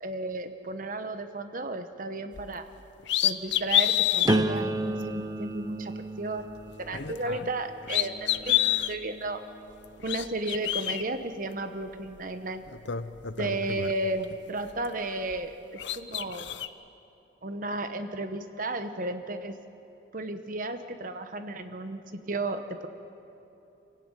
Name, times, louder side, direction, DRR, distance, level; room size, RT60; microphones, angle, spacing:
voice 1, 0.0-2.7 3.2-6.5 6.8-8.6 8.9-9.4 10.0-12.6 13.4-15.5 15.9-16.5 17.4-19.6 20.1-22.9, right 2 dB, 45° right, 8 dB, 1.1 m, -33 dB
sound 1, 2.3-2.5 3.0-4.4 5.0-5.1 6.8-7.6 7.8-8.9 9.8-11.0 12.2-12.3 12.7-14.3 14.7-15.5 15.8-16.7, left 12 dB, 65° left, 0.7 m, -28 dB
sound 2, 4.3-10.1 10.7-11.1, right 1 dB, 20° right, 0.7 m, -33 dB
26.0 x 17.0 x 9.0 m, 2.9 s
head